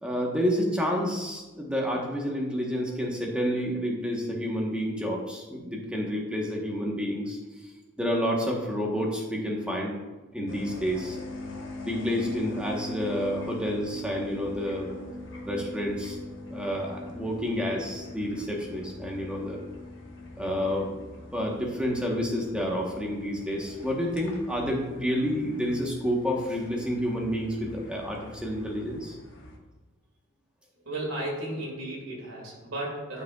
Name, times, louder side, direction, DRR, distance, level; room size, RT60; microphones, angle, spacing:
voice 1, 0.0-7.4 7.8-9.9 10.3-11.2 11.8-14.9 15.5-16.2 16.5-19.6 20.4-20.9 21.3-29.2, equal, 5° right, -1 dB, 1.1 m, -29 dB
sound 1, 10.5-29.6, left 2 dB, 60° left, 1.1 m, -42 dB
voice 2, 30.9-33.2, right 1 dB, 75° right, -3 dB, 2.2 m, -34 dB
11.5 x 4.9 x 2.3 m, 1.2 s
head